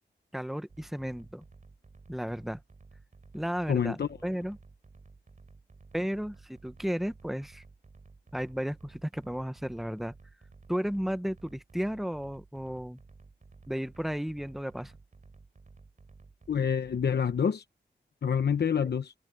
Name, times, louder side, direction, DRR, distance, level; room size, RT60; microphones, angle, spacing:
voice 1, 0.3-1.4 2.1-2.6 3.3-4.6 5.9-7.6 8.3-10.1 10.7-13.0 13.7-14.9 18.8-18.9, equal, ahead, 0.9 m, -34 dB
sound 1, 0.7-17.4, right 4 dB, 45° right, 5.7 m, -55 dB
voice 2, 3.7-4.1 16.5-17.6 18.2-19.1, left 7 dB, 65° left, 0.9 m, -27 dB
wide cardioid pair, 130°, 18 cm